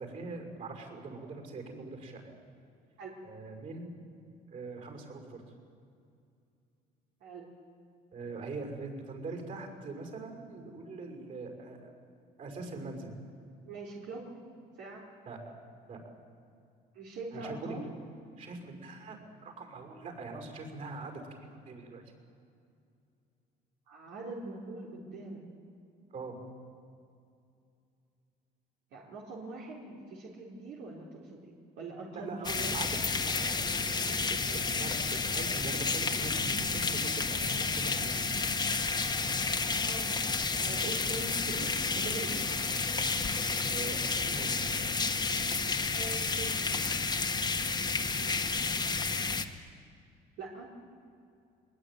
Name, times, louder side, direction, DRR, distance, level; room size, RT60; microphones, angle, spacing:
voice 1, 0.0-2.3 3.2-4.0 4.5-5.4 8.1-11.9 12.4-13.1 15.2-15.5 15.9-16.1 17.3-17.8 18.4-22.0 26.1-26.4 32.1-32.9 33.2-38.2 43.7-45.0, right 3 dB, 50° right, 3 dB, 6.1 m, -42 dB
voice 2, 13.7-14.3 14.8-15.1 16.9-17.9 23.9-25.4 28.9-32.7 39.8-40.1 40.6-42.4 45.9-46.9 48.1-48.5 50.4-50.7, right 3 dB, 85° right, -3 dB, 3.8 m, -43 dB
sound 1, 32.4-49.4, left 4 dB, 25° left, 1.4 m, -31 dB
22.0 x 21.0 x 9.5 m, 2.5 s
cardioid pair, 110°, 17 cm